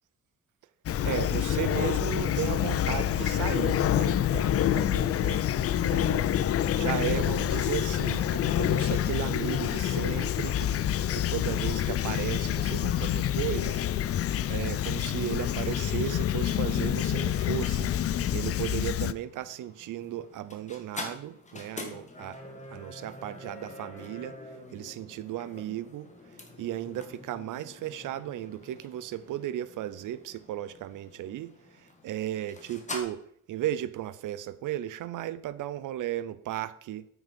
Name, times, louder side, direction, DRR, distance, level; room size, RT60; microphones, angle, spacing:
Fowl / Chirp tweet, 0.9-19.1, left 11 dB, 50° left, 0.5 m, -27 dB
voice 1, 1.0-5.4 5.7-6.2 6.7-10.7 11.1-13.8 14.1-14.2 14.5-17.9 18.3-22.4 22.7-24.4 24.7-26.1 26.6-33.2 33.5-37.1, right 12 dB, 85° right, 0.6 m, -35 dB
sound 1, 17.9-33.0, left 2 dB, 25° left, 1.8 m, -46 dB
9.2 x 6.3 x 5.2 m
cardioid pair, 120°, 30 cm